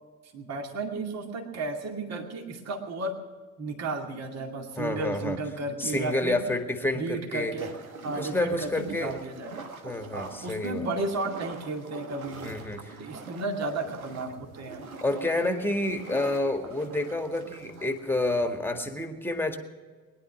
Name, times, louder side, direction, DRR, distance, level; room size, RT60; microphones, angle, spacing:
voice 1, 0.3-3.2 3.6-6.4 6.9-7.8 8.0-9.5 10.1-12.6 13.0-14.9, right 2 dB, 40° right, 3 dB, 2.4 m, -33 dB
voice 2, 4.8-5.4 5.8-7.6 8.1-9.1 9.8-10.9 12.4-13.0 15.0-19.6, left 2 dB, 5° left, 6 dB, 1.9 m, -29 dB
sound 1, 7.6-18.6, right 4 dB, 80° right, 1.3 m, -44 dB
21.0 x 11.0 x 6.1 m, 1.5 s
figure-of-eight pair, 55°, 41 cm